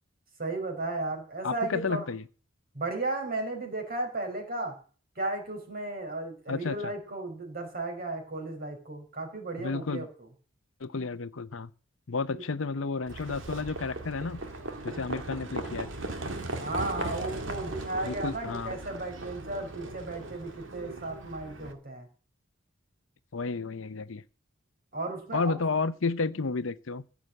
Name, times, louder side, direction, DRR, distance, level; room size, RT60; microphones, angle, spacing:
voice 1, 0.4-2.1 2.7-4.8 5.2-10.1 12.3-12.4 16.6-22.1 24.9-25.6, right 2 dB, 45° right, 4.5 m, -34 dB
voice 2, 1.4-2.2 6.5-6.8 9.6-10.1 10.8-11.7 12.1-14.4 14.8-15.9 18.0-18.7 23.3-24.2 25.3-27.0, left 4 dB, 70° left, 0.7 m, -31 dB
Livestock farm animals working animals, 13.1-21.7, right 2 dB, 65° right, 2.0 m, -38 dB
15.0 x 6.1 x 7.8 m
head